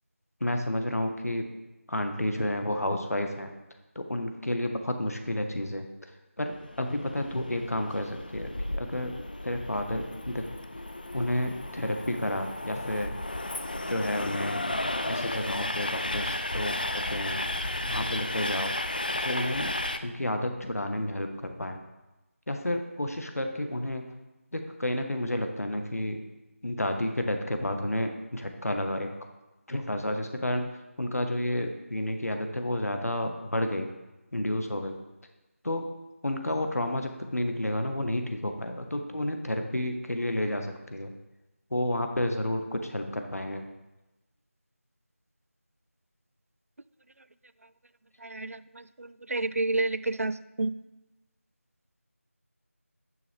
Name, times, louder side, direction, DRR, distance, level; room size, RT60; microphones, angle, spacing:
voice 1, 0.4-1.5 1.9-3.5 3.9-6.1 6.4-9.1 9.4-10.4 11.1-13.1 13.9-14.6 15.1-17.4 17.9-18.7 19.2-19.7 20.0-21.8 22.5-24.0 24.5-26.2 26.6-29.1 29.7-30.7 31.0-33.9 34.3-34.9 35.6-35.9 36.2-41.1 41.7-43.7, left 1 dB, 90° left, 5 dB, 1.3 m, -31 dB
Train, 6.5-20.0, left 1 dB, 35° left, 0.4 m, -34 dB
voice 2, 48.2-50.8, right 2 dB, 75° right, 16 dB, 0.4 m, -30 dB
9.9 x 7.0 x 3.4 m, 1.0 s
figure-of-eight pair, 175°, 8 cm